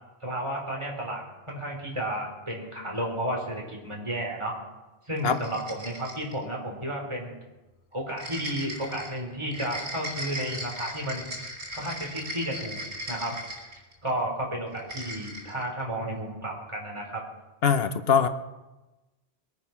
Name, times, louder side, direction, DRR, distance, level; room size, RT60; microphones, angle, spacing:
voice 1, 0.2-4.5 5.1-7.4 7.9-11.4 11.7-12.8 13.1-13.3 14.0-17.2, right 1 dB, 25° right, -1 dB, 3.9 m, -32 dB
sound 1, 5.2-6.4 8.2-14.1 14.7-15.6, equal, 85° right, 4.5 m, -38 dB
voice 2, 17.6-18.3, left 6 dB, 65° left, 10 dB, 1.1 m, -22 dB
22.0 x 9.1 x 5.9 m, 1.1 s
omnidirectional pair, 1.1 m